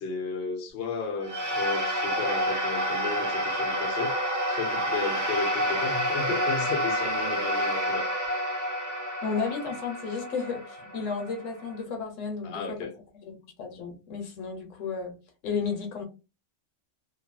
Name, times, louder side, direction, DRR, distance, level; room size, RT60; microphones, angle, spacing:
voice 1, 0.0-4.2 4.5-8.1 12.4-12.9, left 4 dB, 55° left, 0.8 m, -33 dB
sound 1, 1.2-11.8, equal, 20° right, 0.6 m, -29 dB
voice 2, 9.2-12.9 13.2-15.2 15.4-16.0, left 5 dB, 80° left, 1.1 m, -33 dB
2.6 x 2.5 x 2.2 m
omnidirectional pair, 1.3 m